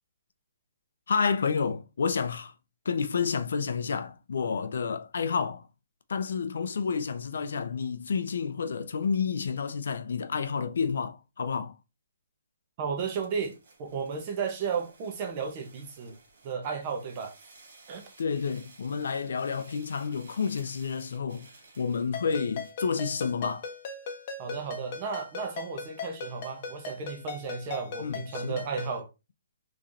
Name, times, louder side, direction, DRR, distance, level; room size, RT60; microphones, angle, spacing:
voice 1, 1.1-2.5 2.8-5.7 6.1-11.7 18.2-21.5 21.8-23.7 28.0-28.6, left 5 dB, 65° left, 0.6 m, -30 dB
voice 2, 12.8-16.2 16.4-17.4 17.9-18.0 24.4-29.1, right 5 dB, 25° right, 0.8 m, -34 dB
sound 1, 13.0-22.8, right 3 dB, 60° right, 1.8 m, -56 dB
Ringtone, 22.1-29.0, left 4 dB, 30° left, 0.8 m, -39 dB
4.1 x 3.1 x 2.5 m
hypercardioid pair, 170°, 0 cm